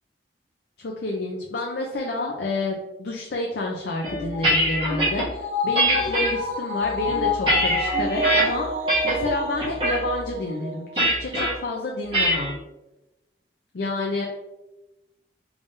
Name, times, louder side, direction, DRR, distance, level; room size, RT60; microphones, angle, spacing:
voice 1, 0.8-8.7 9.0-12.5 13.7-14.3, left 2 dB, 70° left, -1 dB, 0.5 m, -29 dB
sound 1, 4.0-5.2 5.8-6.3 6.9-8.4 8.9-9.3 9.6-10.0 11.0-11.5 12.1-12.5, equal, 30° right, 1.3 m, -22 dB
sound 2, 4.3-11.0 11.3-11.4, left 1 dB, 55° right, 0.8 m, -29 dB
3.6 x 3.4 x 2.6 m, 0.96 s
head